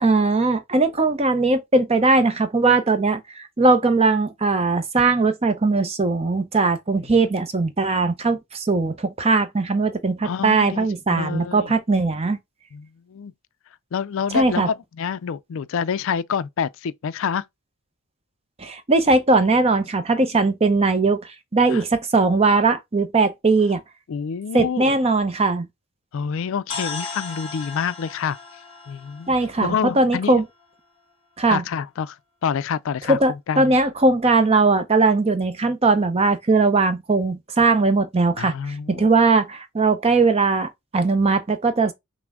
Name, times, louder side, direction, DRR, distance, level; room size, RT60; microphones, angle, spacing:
voice 1, 0.0-12.4 14.3-14.7 18.6-23.8 24.5-25.7 29.3-30.4 31.4-31.6 33.1-41.9, right 3 dB, 25° right, 0.6 m, -19 dB
voice 2, 10.2-11.7 12.7-13.3 13.9-17.4 21.7-21.8 24.1-25.0 26.1-28.4 28.9-29.3 29.6-30.4 31.5-32.2 32.4-33.7 38.4-39.1, left 7 dB, 60° left, 0.3 m, -27 dB
sound 1, 26.7-30.6, left 4 dB, 25° left, 1.0 m, -36 dB
5.9 x 2.1 x 3.5 m
head